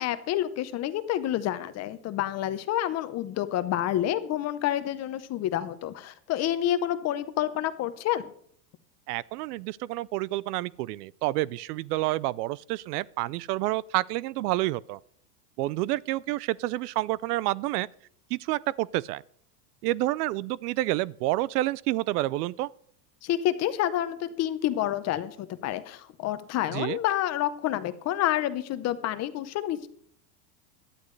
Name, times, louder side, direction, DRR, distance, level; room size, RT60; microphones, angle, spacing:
voice 1, 0.0-8.3 23.2-29.9, left 12 dB, 30° left, 0.8 m, -28 dB
voice 2, 9.1-15.0 15.6-17.9 18.3-19.2 19.8-22.7 26.7-27.0, right 17 dB, 70° right, 0.5 m, -29 dB
18.0 x 11.5 x 3.2 m
supercardioid pair, 135°, 49 cm